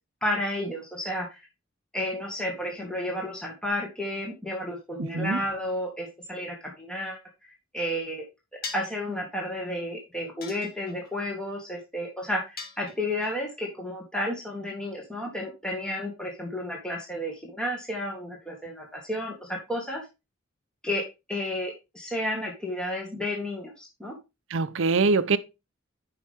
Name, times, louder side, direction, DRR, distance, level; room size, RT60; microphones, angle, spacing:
voice 1, 0.2-1.5 1.9-8.3 8.7-20.0 20.8-21.0 21.3-24.1, left 1 dB, 5° left, 2.0 m, -32 dB
voice 2, 5.0-5.4 24.5-25.4, right 4 dB, 70° right, 0.7 m, -23 dB
sound 1, 8.6-9.0 10.4-11.1 12.6-13.3, left 4 dB, 50° left, 2.0 m, -40 dB
10.5 x 5.7 x 3.6 m
head